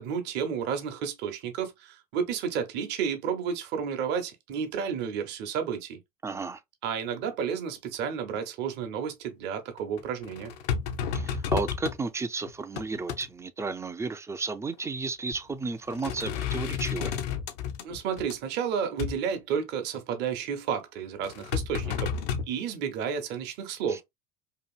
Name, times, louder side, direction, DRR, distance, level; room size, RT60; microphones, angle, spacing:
voice 1, 0.0-6.0 6.8-10.6 17.8-22.1 22.5-24.0, right 7 dB, 55° right, 0.8 m, -31 dB
voice 2, 6.2-6.6 11.1-17.2 23.9-24.0, right 4 dB, 15° right, 0.3 m, -33 dB
sound 1, 9.8-12.0 12.5-13.3 14.7-14.9 15.3-15.5 15.9-18.3 19.0-19.2 21.2-22.4, left 7 dB, 70° left, 0.5 m, -31 dB
2.8 x 2.5 x 2.3 m
hypercardioid pair, 80°, 21 cm